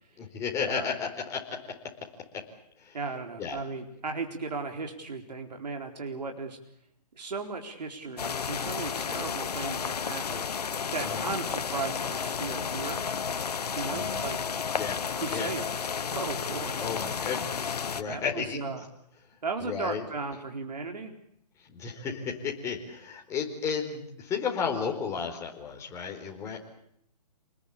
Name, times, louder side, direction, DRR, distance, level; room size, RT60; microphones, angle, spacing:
voice 1, 0.2-1.8 2.3-2.4 2.8-3.0 3.4-3.6 11.0-11.3 13.9-14.3 14.8-15.0 15.3-15.5 16.8-18.6 19.6-20.1 21.7-26.6, left 6 dB, 15° left, 1 dB, 4.4 m, -33 dB
voice 2, 2.9-6.6 7.2-10.5 10.9-13.0 13.8-14.4 15.1-15.7 16.1-16.9 18.0-18.9 19.4-21.1, right 4 dB, 75° right, 4 dB, 4.3 m, -36 dB
sound 1, 8.2-18.0, left 6 dB, 70° left, 1.6 m, -32 dB
28.0 x 20.5 x 8.5 m, 0.73 s
hypercardioid pair, 155°, 21 cm